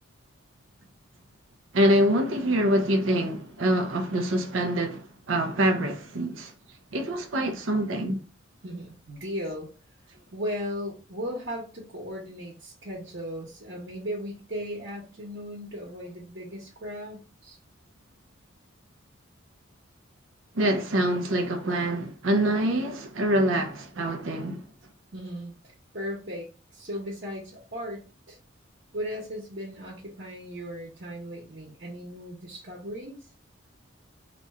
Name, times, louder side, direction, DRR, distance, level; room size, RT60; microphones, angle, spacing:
voice 1, 1.7-6.5 6.9-8.2 20.5-24.6, right 1 dB, 75° right, 0.6 m, -25 dB
voice 2, 8.6-9.7 10.3-17.6 25.1-28.4 28.9-33.2, equal, 55° right, 1.1 m, -37 dB
3.0 x 2.4 x 4.2 m
head